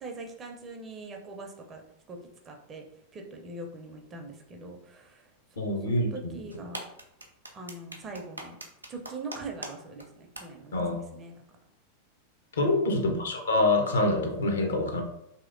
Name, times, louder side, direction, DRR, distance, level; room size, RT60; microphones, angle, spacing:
voice 1, 0.0-1.8 2.1-2.2 2.4-2.8 3.1-5.2 5.6-6.8 7.5-8.6 8.9-10.8 11.1-11.4 12.7-13.0, right 3 dB, 25° right, 3 dB, 0.5 m, -42 dB
voice 2, 5.6-6.3 10.7-11.0 12.6-15.0, left 2 dB, 65° left, 4 dB, 0.6 m, -26 dB
sound 1, 6.5-9.7 10.0-10.1 10.4-10.5, right 1 dB, 85° right, 0.5 m, -39 dB
3.0 x 2.8 x 2.5 m, 0.79 s
figure-of-eight pair, 90°, 0 cm